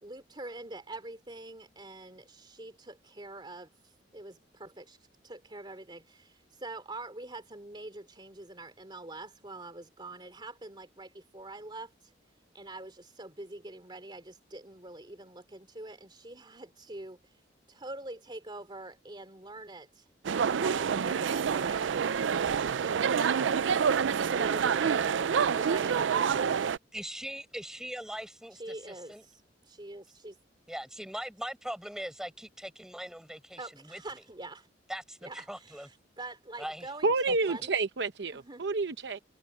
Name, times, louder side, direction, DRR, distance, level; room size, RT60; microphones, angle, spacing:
voice 1, 0.0-5.0 5.2-12.1 12.5-17.4 17.7-22.0 22.3-23.7 24.3-26.7 28.5-30.3 33.6-34.7 35.2-37.7 38.3-38.7, right 2 dB, 25° right, 3.2 m, -45 dB
sound 1, 20.2-26.8, right 7 dB, 90° right, 0.4 m, -27 dB
voice 2, 26.9-29.2 30.7-34.0 34.9-35.9 36.6-36.9 37.3-37.6, equal, 5° right, 7.9 m, -41 dB
voice 3, 37.0-39.2, right 3 dB, 65° right, 0.9 m, -29 dB
head